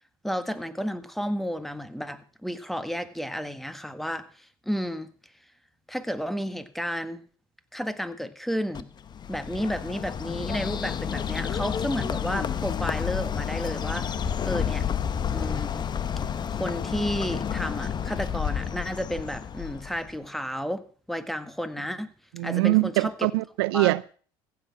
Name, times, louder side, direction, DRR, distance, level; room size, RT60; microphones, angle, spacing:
voice 1, 0.2-5.1 5.9-7.2 7.7-8.9 9.3-14.1 14.4-14.8 15.3-15.9 16.5-20.8 21.1-22.1 22.4-23.3 23.7-23.9, equal, ahead, 1.6 m, -32 dB
Bird, 8.7-20.2, left 8 dB, 35° left, 1.1 m, -30 dB
voice 2, 22.4-24.1, right 22 dB, 80° right, 0.5 m, -23 dB
15.0 x 8.5 x 5.8 m
hypercardioid pair, 80°, 13 cm